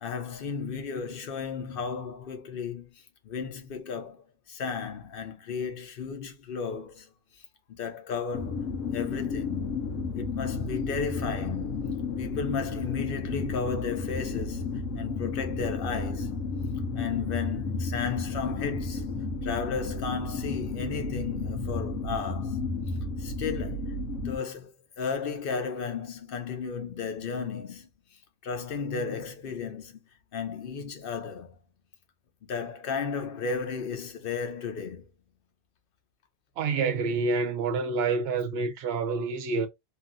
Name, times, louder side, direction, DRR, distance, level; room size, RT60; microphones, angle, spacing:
voice 1, 0.0-9.7 10.1-16.3 16.9-19.1 19.4-22.6 23.2-24.0 24.2-30.0 30.3-31.6 32.4-35.1, left 5 dB, 55° left, 0.8 m, -34 dB
sound 1, 8.3-24.4, left 3 dB, 80° left, 1.1 m, -32 dB
voice 2, 36.6-39.7, right 4 dB, 60° right, 0.8 m, -27 dB
2.9 x 2.5 x 2.5 m
omnidirectional pair, 1.3 m